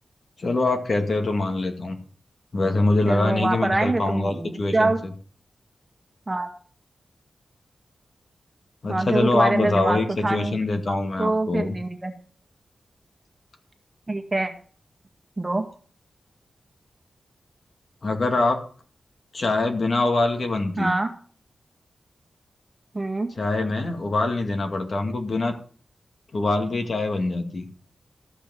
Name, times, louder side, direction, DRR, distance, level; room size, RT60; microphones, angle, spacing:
voice 1, 0.4-2.0 2.5-4.9 8.8-11.8 18.0-18.6 19.3-20.9 23.4-25.5 26.3-27.7, left 2 dB, 50° left, 4 dB, 2.2 m, -24 dB
voice 2, 3.0-5.0 6.3-6.5 8.9-10.6 11.2-12.1 14.1-14.5 15.4-15.6 20.8-21.1 22.9-23.3, right 2 dB, 25° right, 4 dB, 2.0 m, -24 dB
13.5 x 6.1 x 7.7 m, 0.43 s
wide cardioid pair, 95°, 0 cm